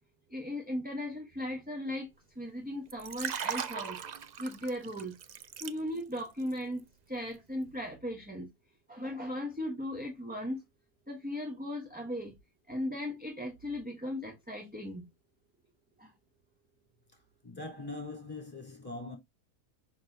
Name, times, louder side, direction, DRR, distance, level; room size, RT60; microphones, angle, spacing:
voice 1, 0.3-2.1 2.4-4.0 4.4-5.1 5.6-8.5 8.9-10.6 11.1-12.3 12.7-15.1 16.0-16.1, left 1 dB, 5° right, 1.2 m, -37 dB
Liquid, 2.9-6.2 6.5-6.8, right 7 dB, 55° right, 0.4 m, -38 dB
voice 2, 17.4-19.2, left 2 dB, 15° left, 4.0 m, -41 dB
6.5 x 6.0 x 2.8 m
omnidirectional pair, 1.4 m